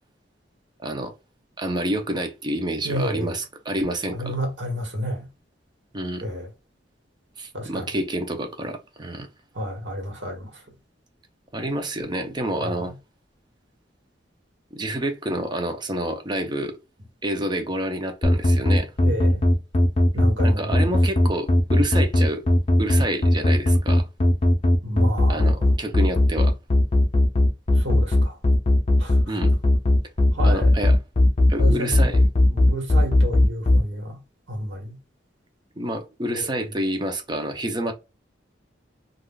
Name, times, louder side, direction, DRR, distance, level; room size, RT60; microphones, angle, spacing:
voice 1, 0.8-1.1 1.6-4.4 5.9-6.2 7.4-9.3 11.5-12.9 14.7-16.8 17.2-18.9 20.4-22.4 22.8-24.1 25.3-26.5 29.3-29.5 30.4-31.0 31.5-32.3 35.8-37.9, right 1 dB, 25° right, 0.6 m, -28 dB
voice 2, 2.8-3.4 4.1-5.3 6.2-6.5 7.5-7.9 9.5-10.5 12.6-12.8 19.0-19.4 20.1-20.9 24.8-25.7 27.7-28.4 29.0-29.2 30.3-30.7 31.6-32.1 32.5-34.2 34.5-35.0 36.3-36.7, equal, 85° right, 1.3 m, -30 dB
sound 1, 18.2-33.8, left 1 dB, 35° left, 0.6 m, -17 dB
3.6 x 2.4 x 2.3 m
head